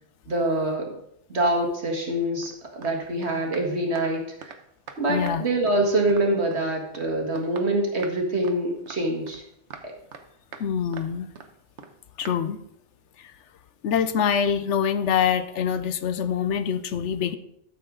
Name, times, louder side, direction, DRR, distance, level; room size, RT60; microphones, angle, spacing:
voice 1, 0.3-0.9 1.3-4.5 5.0-9.4 9.8-9.9, right 1 dB, 70° right, 1 dB, 2.1 m, -25 dB
sound 1, 2.4-2.5 2.8-3.0 3.2-4.6 4.9-5.4 5.7-6.6 6.9-7.1 7.4-8.2 8.4-8.6 8.9-9.4 9.7-10.3 10.5-10.7 10.9-11.5 11.8-11.9 12.2-12.4, right 5 dB, 85° right, 1.2 m, -43 dB
voice 2, 5.1-5.5 10.6-11.3 12.2-12.6 13.2-13.3 13.8-17.4, left 8 dB, 85° left, 12 dB, 1.0 m, -25 dB
13.0 x 7.0 x 3.8 m, 0.77 s
omnidirectional pair, 1.2 m